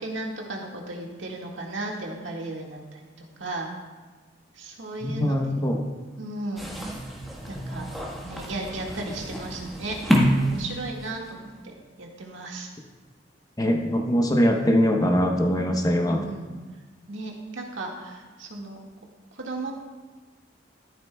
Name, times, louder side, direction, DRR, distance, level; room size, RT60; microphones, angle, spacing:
voice 1, 0.0-3.7 4.6-5.7 6.2-6.7 7.5-7.9 8.2-10.0 10.4-12.7 16.0-16.5 17.1-18.8 19.3-19.7, right 2 dB, 85° right, -1 dB, 1.8 m, -35 dB
voice 2, 5.0-5.9 13.6-16.3, equal, 20° left, 3 dB, 0.8 m, -22 dB
sound 1, 6.6-11.3, equal, ahead, 1.3 m, -28 dB
13.5 x 11.5 x 2.3 m, 1.3 s
head